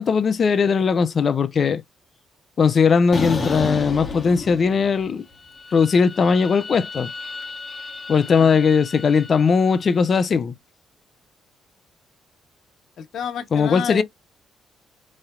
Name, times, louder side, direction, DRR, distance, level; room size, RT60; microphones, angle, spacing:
voice 1, 0.0-1.8 2.6-5.2 5.7-7.1 8.1-10.5 13.5-14.0, left 5 dB, 45° left, 0.4 m, -19 dB
sound 1, 3.1-5.1 5.4-9.7, left 3 dB, 30° left, 1.0 m, -32 dB
voice 2, 13.0-14.0, left 8 dB, 65° left, 0.9 m, -30 dB
3.1 x 2.7 x 2.5 m
cardioid pair, 90°, 0 cm